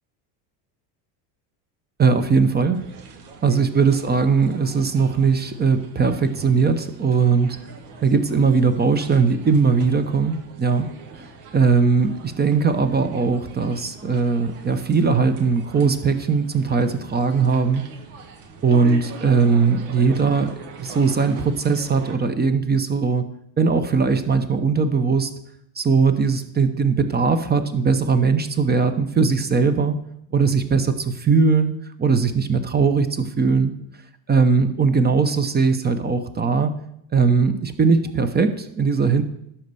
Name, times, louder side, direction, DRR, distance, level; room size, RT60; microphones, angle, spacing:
voice 1, 2.0-2.9 3.4-7.6 8.0-10.9 11.2-11.3 11.5-17.9 18.6-23.2 23.6-25.3 25.8-30.0 30.3-31.7 32.0-33.7 34.3-36.7 37.1-39.2, right 5 dB, 20° right, 10 dB, 0.7 m, -19 dB
sound 1, 2.7-22.2, right 3 dB, 80° right, 2.0 m, -42 dB
11.5 x 4.3 x 6.8 m, 0.75 s
cardioid pair, 120°, 47 cm